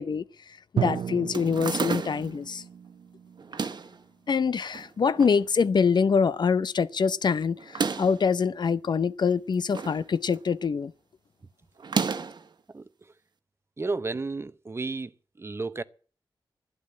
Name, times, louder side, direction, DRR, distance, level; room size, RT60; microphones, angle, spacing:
voice 1, 0.0-2.6 4.3-10.9, left 5 dB, 60° left, 0.6 m, -25 dB
Drum, 0.8-4.5, right 8 dB, 80° right, 0.6 m, -34 dB
sound 1, 1.3-2.4 3.4-4.0 4.7-5.4 5.8-5.9 6.0-6.1 7.6-8.2 9.3-10.0 10.3-10.7 11.8-12.5, right 5 dB, 60° right, 1.3 m, -31 dB
voice 2, 13.8-15.1 15.4-15.8, right 3 dB, 30° right, 0.8 m, -32 dB
12.0 x 11.0 x 8.7 m
wide cardioid pair, 125°, 9 cm